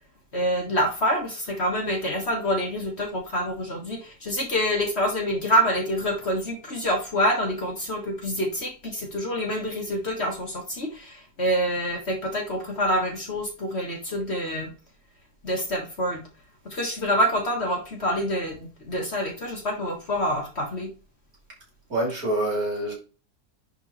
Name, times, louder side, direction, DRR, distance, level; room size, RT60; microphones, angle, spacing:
voice 1, 0.3-14.7 15.4-16.2 16.6-20.9, equal, 40° left, 1.7 m, -26 dB
voice 2, 21.9-22.9, right 1 dB, 55° right, 3.9 m, -26 dB
10.5 x 3.9 x 4.2 m
omnidirectional pair, 1.8 m